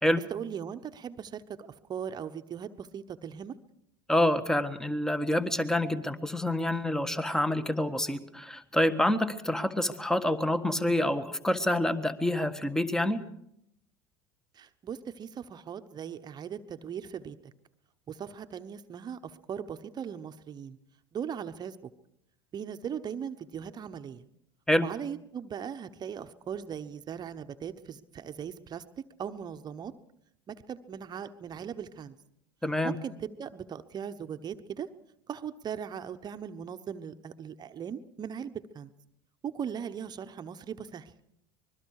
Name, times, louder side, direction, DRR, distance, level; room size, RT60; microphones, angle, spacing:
voice 1, 0.3-3.6 14.5-17.5 18.1-20.8 21.1-21.9 22.5-24.2 24.8-29.9 30.5-32.1 32.8-34.9 35.3-38.9 39.4-41.1, right 8 dB, 35° right, 8 dB, 1.1 m, -39 dB
voice 2, 4.1-13.3 24.7-24.9 32.6-32.9, left 1 dB, 5° left, 11 dB, 1.5 m, -27 dB
25.0 x 21.5 x 4.8 m, 0.76 s
hypercardioid pair, 80°, 12 cm